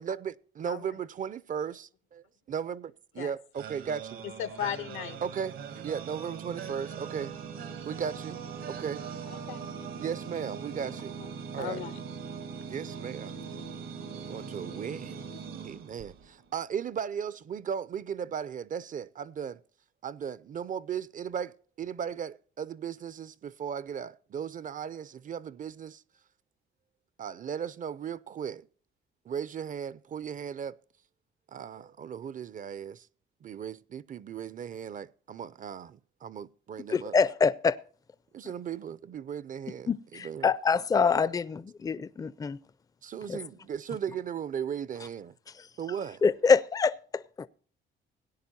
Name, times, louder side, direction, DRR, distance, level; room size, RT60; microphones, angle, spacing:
voice 1, 0.0-4.2 5.2-7.3 7.9-8.4 8.7-9.1 10.0-11.1 11.5-11.8 12.7-13.4 14.1-15.2 15.6-19.6 20.0-26.0 27.2-28.7 29.3-30.8 31.5-33.1 33.4-37.1 38.3-39.9 40.2-40.5 43.0-45.3 45.8-46.2, right 7 dB, 40° right, 0.5 m, -36 dB
sound 1, 3.6-16.5, right 6 dB, 80° right, 1.5 m, -41 dB
voice 2, 4.4-5.2 9.3-9.7 11.6-12.0, left 10 dB, 85° left, 1.0 m, -36 dB
voice 3, 36.9-37.7 39.9-42.6 43.3-43.4 46.2-46.9 47.4-47.5, left 5 dB, 20° left, 0.4 m, -25 dB
17.5 x 10.0 x 2.7 m
cardioid pair, 90°, 20 cm